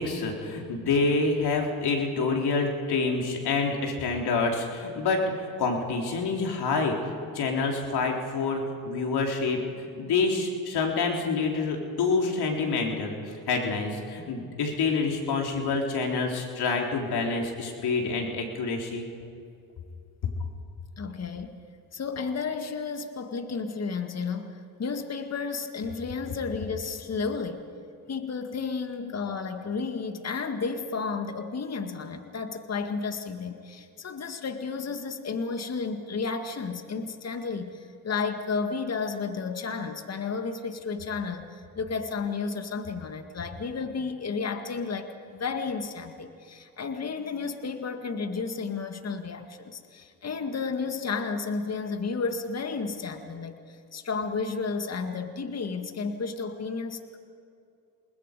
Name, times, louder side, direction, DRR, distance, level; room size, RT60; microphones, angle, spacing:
voice 1, 0.0-6.9 7.3-19.1, left 4 dB, 55° left, 1 dB, 4.0 m, -27 dB
voice 2, 21.0-21.6 21.9-27.7 28.1-57.2, left 4 dB, 35° left, 7 dB, 2.0 m, -32 dB
29.0 x 20.0 x 5.3 m, 2.5 s
hypercardioid pair, 65°, 45 cm